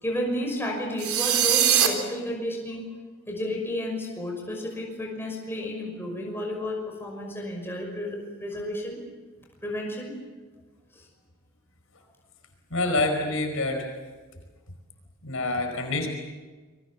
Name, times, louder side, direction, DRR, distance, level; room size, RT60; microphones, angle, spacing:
voice 1, 0.0-2.9 3.3-9.0 9.6-10.1 10.9-11.0, left 1 dB, 10° left, 0 dB, 5.8 m, -32 dB
sound 1, 1.0-1.9, right 10 dB, 80° right, 3.6 m, -21 dB
voice 2, 12.7-13.9 15.2-16.1, left 2 dB, 65° left, 4 dB, 5.1 m, -26 dB
27.5 x 23.0 x 7.3 m, 1.4 s
head